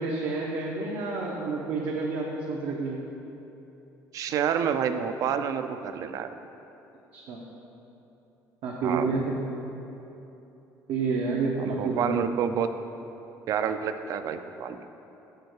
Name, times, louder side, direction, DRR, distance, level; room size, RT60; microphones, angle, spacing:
voice 1, 0.0-3.0 7.1-7.4 8.6-9.5 10.9-12.2, right 3 dB, 70° right, -2 dB, 0.8 m, -29 dB
voice 2, 4.1-6.3 8.8-9.1 11.6-12.7 13.5-14.8, right 8 dB, 55° right, 9 dB, 0.4 m, -28 dB
6.7 x 4.6 x 6.5 m, 3.0 s
cardioid pair, 130°, 7 cm